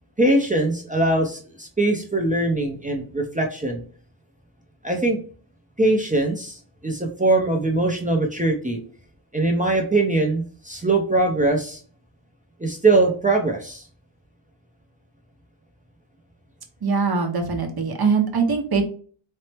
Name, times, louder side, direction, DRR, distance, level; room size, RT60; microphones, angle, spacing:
voice 1, 0.2-3.8 4.8-5.2 5.8-6.6 6.8-8.8 9.3-11.8 12.6-13.8, right 2 dB, 15° right, 1 dB, 0.5 m, -21 dB
voice 2, 16.8-18.8, right 5 dB, 50° right, 3 dB, 0.8 m, -22 dB
4.2 x 2.0 x 3.3 m, 0.42 s
wide cardioid pair, 125°, 49 cm